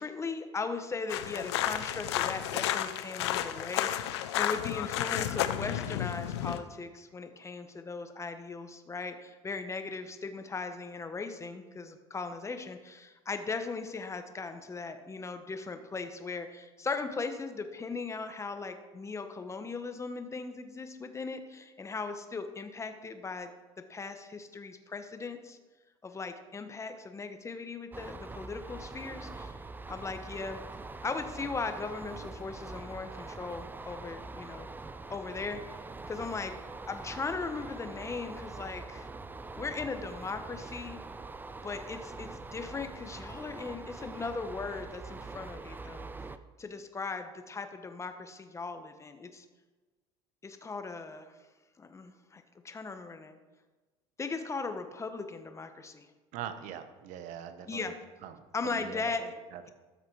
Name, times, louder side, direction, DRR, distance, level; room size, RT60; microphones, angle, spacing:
voice 1, 0.0-23.5 23.9-25.6 26.0-29.6 29.9-30.6 31.0-34.7 35.1-35.8 36.1-36.6 36.9-39.1 39.6-41.0 41.6-46.1 46.6-49.4 50.4-51.3 51.8-53.4 54.2-56.1 57.7-57.9 58.5-59.3, left 4 dB, 20° left, 8 dB, 1.2 m, -38 dB
sound 1, 1.1-6.6, left 11 dB, 90° left, 0.6 m, -32 dB
sound 2, 27.9-46.4, right 3 dB, 15° right, 0.6 m, -44 dB
voice 2, 56.3-57.9 58.2-59.7, right 9 dB, 65° right, 9 dB, 1.1 m, -43 dB
13.0 x 6.5 x 4.8 m, 1.2 s
supercardioid pair, 90°, 14 cm